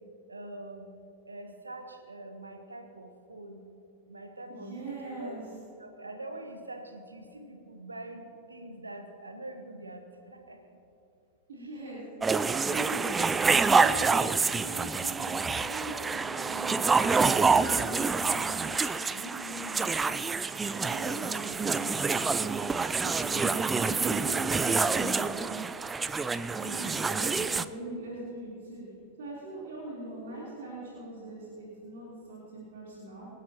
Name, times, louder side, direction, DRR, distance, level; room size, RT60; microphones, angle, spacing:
voice 1, 0.3-0.9 1.2-3.7 4.1-5.3 5.8-10.8 21.0-21.3 26.4-27.3, right 1 dB, 80° right, 6 dB, 1.4 m, -44 dB
voice 2, 4.5-5.5 11.5-13.2 13.8-14.3 14.6-22.6 23.0-23.5 23.8-25.5 26.2-28.8 29.2-33.3, right 2 dB, 60° right, -7 dB, 3.8 m, -42 dB
sound 1, 12.2-27.6, right 4 dB, 15° right, 0.4 m, -27 dB
26.5 x 11.5 x 3.0 m, 2.7 s
figure-of-eight pair, 90°, 0 cm